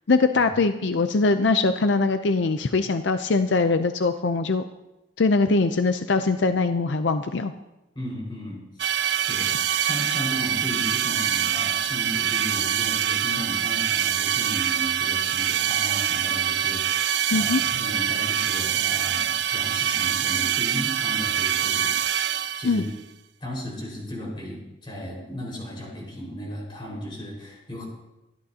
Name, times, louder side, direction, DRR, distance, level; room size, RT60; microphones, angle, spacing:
voice 1, 0.1-4.6 5.2-7.5 17.3-17.6 22.6-22.8, left 3 dB, 75° left, 9 dB, 0.5 m, -22 dB
voice 2, 7.9-8.6 9.3-9.5 9.8-22.3 22.6-22.9 23.4-27.8, equal, 25° left, -3 dB, 4.7 m, -35 dB
sound 1, 8.8-22.9, right 9 dB, 65° right, 0.6 m, -25 dB
24.5 x 11.0 x 2.8 m, 0.97 s
head